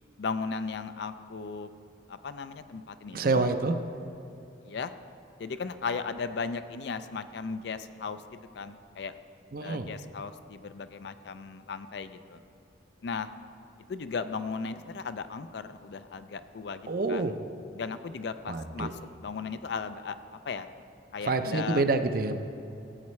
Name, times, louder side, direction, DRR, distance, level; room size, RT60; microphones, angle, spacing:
voice 1, 0.2-1.7 2.1-3.4 4.6-4.9 5.4-8.2 8.5-9.2 9.6-12.4 13.0-13.3 13.9-17.3 17.7-18.9 19.2-20.2 20.5-20.7 21.1-21.8, left 5 dB, 60° left, 11 dB, 0.4 m, -36 dB
voice 2, 3.1-3.7 9.5-9.9 16.9-17.3 18.5-18.9 21.2-22.4, right 3 dB, 50° right, 8 dB, 0.5 m, -27 dB
15.0 x 8.2 x 3.2 m, 2.8 s
head